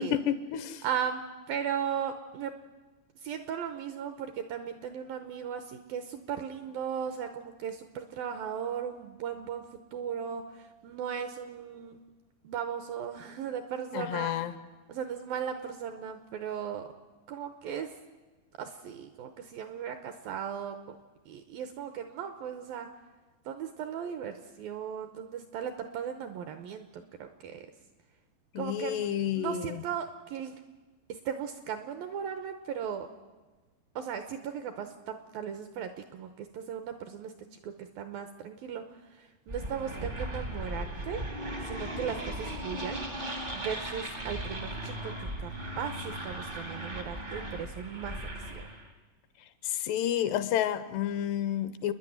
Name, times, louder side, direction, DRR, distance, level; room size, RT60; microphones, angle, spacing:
voice 1, 0.0-0.8 13.9-14.5 28.5-29.8 49.6-51.9, left 10 dB, 80° left, 13 dB, 2.8 m, -30 dB
voice 2, 0.8-2.5 3.2-9.7 9.9-12.0 12.4-14.3 14.9-16.9 17.3-17.9 18.6-21.0 21.3-22.9 23.5-27.7 28.6-29.1 29.4-30.6 31.1-33.1 34.0-38.8 39.1-41.2 41.6-43.1 43.5-45.1 45.4-45.5 45.8-48.2 48.5-48.7, right 8 dB, 75° right, 8 dB, 2.2 m, -37 dB
sound 1, 39.5-48.9, right 1 dB, 45° right, 0.6 m, -37 dB
30.0 x 10.5 x 9.3 m, 1.3 s
omnidirectional pair, 5.1 m